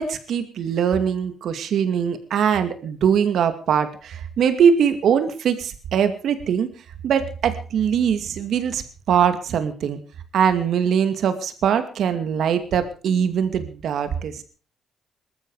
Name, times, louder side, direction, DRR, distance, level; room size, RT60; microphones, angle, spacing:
voice 1, 0.0-6.7 7.0-10.0 10.3-14.4, right 7 dB, 70° right, 10 dB, 2.4 m, -22 dB
19.5 x 13.5 x 4.9 m, 0.38 s
cardioid pair, 90°, 0 cm